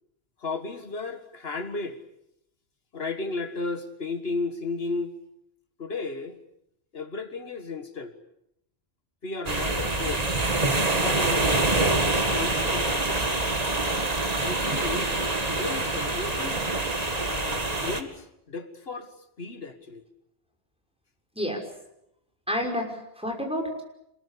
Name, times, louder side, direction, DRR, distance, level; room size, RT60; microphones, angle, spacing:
voice 1, 0.4-2.0 2.9-5.2 5.8-6.4 6.9-8.1 9.2-10.3 11.0-12.9 14.4-15.1 15.5-16.6 17.3-20.0, left 3 dB, 75° left, 8 dB, 1.9 m, -34 dB
sound 1, 9.5-18.0, right 2 dB, 40° right, 2.1 m, -25 dB
voice 2, 22.5-23.8, equal, 5° right, 2 dB, 5.8 m, -29 dB
27.0 x 21.0 x 8.5 m, 0.81 s
omnidirectional pair, 1.0 m